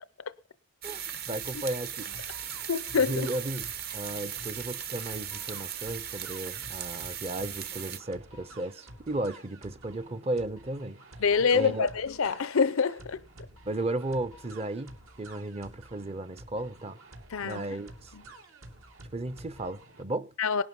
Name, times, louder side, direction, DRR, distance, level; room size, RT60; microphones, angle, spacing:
voice 1, 0.8-2.2 3.1-11.0 11.5-11.9 13.6-17.0 17.4-18.1 19.1-20.3, right 2 dB, 30° right, 0.7 m, -35 dB
sound 1, 0.8-8.0, right 9 dB, 50° right, 1.2 m, -38 dB
sound 2, 1.4-20.0, right 1 dB, 80° right, 3.0 m, -51 dB
voice 2, 2.7-3.3 11.2-13.2 17.3-17.6 18.1-18.2 20.4-20.6, left 5 dB, 80° left, 0.6 m, -26 dB
19.0 x 11.0 x 5.4 m
head